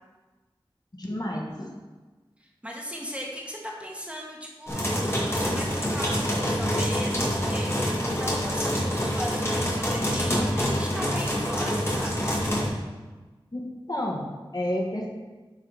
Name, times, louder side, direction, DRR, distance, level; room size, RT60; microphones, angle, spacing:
voice 1, 1.0-1.7 13.5-15.1, left 1 dB, 45° left, -2 dB, 1.4 m, -30 dB
voice 2, 2.4-12.4, equal, 15° right, -2 dB, 1.8 m, -37 dB
sound 1, 4.7-12.7, equal, 30° left, 2.0 m, -26 dB
11.5 x 4.0 x 4.8 m, 1.2 s
wide cardioid pair, 45°, 9 cm